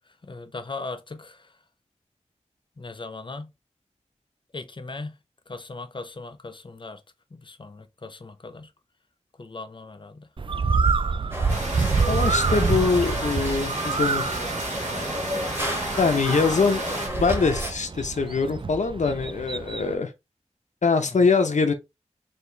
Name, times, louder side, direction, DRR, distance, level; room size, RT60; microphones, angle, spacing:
voice 1, 0.2-1.5 2.8-3.5 4.5-5.2 5.5-7.0 7.3-8.7 9.4-10.3 19.0-19.3, left 3 dB, 40° left, 0.6 m, -38 dB
Bird, 10.4-19.9, right 4 dB, 45° right, 0.3 m, -27 dB
sound 1, 11.3-17.7, equal, 20° right, 1.6 m, -32 dB
sound 2, 11.5-17.1, right 2 dB, 80° right, 1.9 m, -33 dB
voice 2, 12.1-14.4 16.0-16.8 17.2-20.1 20.8-21.7, left 4 dB, 90° left, 0.7 m, -23 dB
4.2 x 2.8 x 3.3 m
wide cardioid pair, 75°, 12 cm